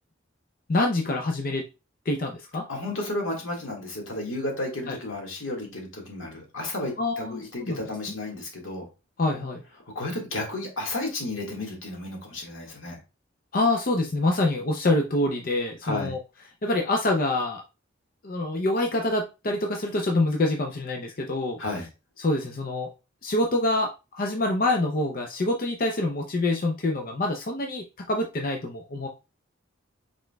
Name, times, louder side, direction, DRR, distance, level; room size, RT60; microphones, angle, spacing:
voice 1, 0.7-1.6 2.1-2.6 4.9-5.0 7.0-7.8 9.2-9.6 13.5-16.2 16.6-17.6 18.2-21.6 22.2-22.9 23.2-29.1, left 2 dB, 45° left, 2 dB, 0.6 m, -26 dB
voice 2, 2.7-8.9 10.0-13.0 15.8-16.1 21.6-21.9, left 2 dB, 90° left, 1 dB, 1.8 m, -32 dB
5.8 x 3.7 x 2.2 m, 0.28 s
head